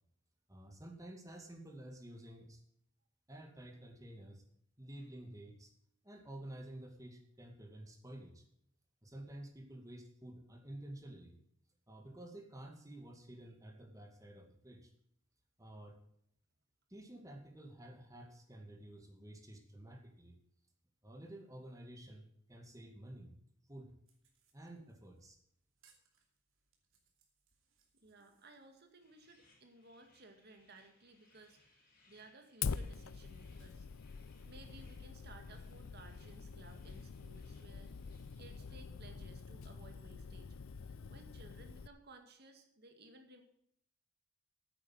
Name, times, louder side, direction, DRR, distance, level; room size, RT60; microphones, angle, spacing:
voice 1, 0.5-2.6 3.3-4.4 4.8-5.7 6.0-8.4 9.0-11.4 11.9-14.9 15.6-16.0 16.9-20.4 21.0-22.2 22.5-23.3 23.7-23.9 24.5-25.4, right 1 dB, 15° right, 2 dB, 2.2 m, -51 dB
sound 1, 24.1-29.4, right 6 dB, 75° right, 2.7 m, -75 dB
voice 2, 28.0-33.9 34.5-40.5 40.8-43.4, right 2 dB, 50° right, 5 dB, 2.1 m, -59 dB
sound 2, 29.0-38.7, left 2 dB, 45° left, 5.1 m, -71 dB
Fire, 32.6-41.9, left 5 dB, 80° left, 0.5 m, -45 dB
9.6 x 8.9 x 7.6 m, 0.70 s
head